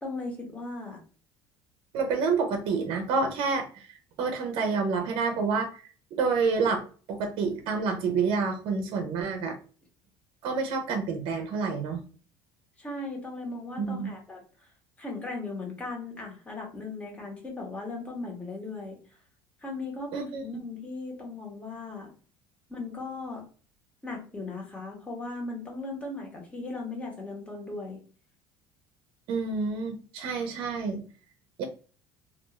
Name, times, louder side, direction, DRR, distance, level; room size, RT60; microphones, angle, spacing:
voice 1, 0.0-1.0 2.5-2.6 12.8-14.4 15.0-19.0 19.6-22.1 22.7-23.4 24.0-28.0, left 3 dB, 15° left, 0 dB, 1.0 m, -37 dB
voice 2, 1.9-6.8 7.1-9.6 10.4-12.0 13.8-14.1 20.1-20.4 29.3-31.0 31.6-31.7, right 4 dB, 65° right, 5 dB, 0.6 m, -28 dB
2.4 x 2.2 x 3.0 m, 0.39 s
cardioid pair, 120°, 10 cm